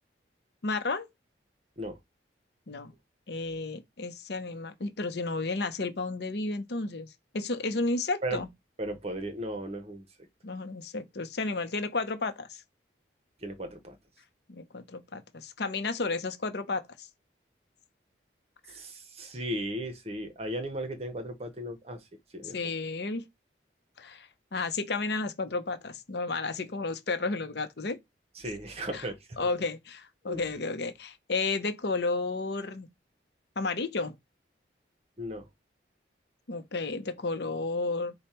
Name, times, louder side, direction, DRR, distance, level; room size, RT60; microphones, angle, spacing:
voice 1, 0.6-1.1 2.7-2.9 3.3-7.1 7.3-8.5 10.4-12.6 14.5-17.1 22.4-23.2 24.0-28.0 28.9-29.0 29.4-32.9 33.6-34.1 36.5-38.1, left 3 dB, 65° left, 0.7 m, -32 dB
voice 2, 8.8-10.0 13.4-14.0 18.7-22.0 22.3-22.7 28.4-29.5 30.3-30.5 35.2-35.4, right 1 dB, 35° right, 0.8 m, -36 dB
5.2 x 2.2 x 4.3 m
head